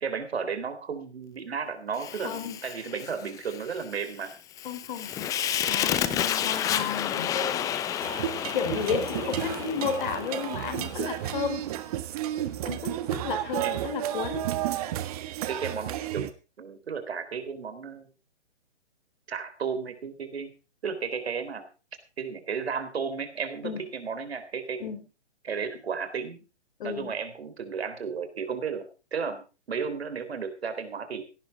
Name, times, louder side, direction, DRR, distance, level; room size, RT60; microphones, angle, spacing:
voice 1, 0.0-4.3 13.6-13.8 15.5-16.3 16.6-18.1 19.3-20.5 20.8-21.7 22.2-24.8 25.4-26.4 26.8-31.2, right 6 dB, 65° right, 9 dB, 3.8 m, -33 dB
Fire, 2.0-11.2, left 10 dB, 10° left, 0.7 m, -31 dB
voice 2, 2.2-2.6 4.6-5.3 5.7-7.6 8.5-11.6 12.6-14.5 23.6-23.8 24.8-25.1 26.8-27.1, left 6 dB, 50° left, 8 dB, 4.3 m, -32 dB
sound 1, 8.0-16.3, right 13 dB, 35° right, 1.6 m, -32 dB
17.0 x 11.5 x 4.7 m, 0.33 s
figure-of-eight pair, 135°, 34 cm